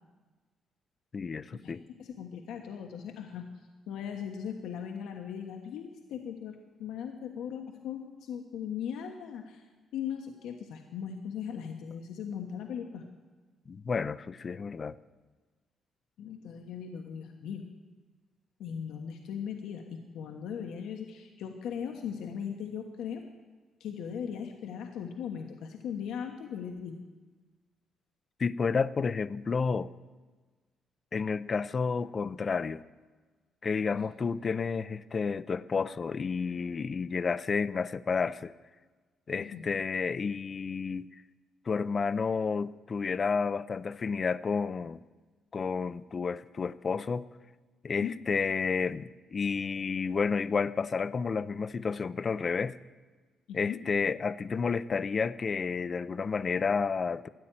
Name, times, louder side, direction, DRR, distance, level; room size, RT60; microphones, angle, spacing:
voice 1, 1.1-1.8 13.7-15.0 28.4-29.9 31.1-32.8 33.6-38.5 39.3-41.1 41.7-45.0 45.5-47.3 47.8-52.8 53.5-57.3, left 5 dB, 40° left, 16 dB, 0.5 m, -31 dB
voice 2, 2.0-3.5 3.9-9.6 9.9-13.0 16.2-17.6 18.6-23.2 23.8-27.0 39.5-39.6 48.0-48.1 53.5-53.8, left 8 dB, 85° left, 3 dB, 1.2 m, -38 dB
13.5 x 9.9 x 9.0 m, 1.4 s
cardioid pair, 90°, 0 cm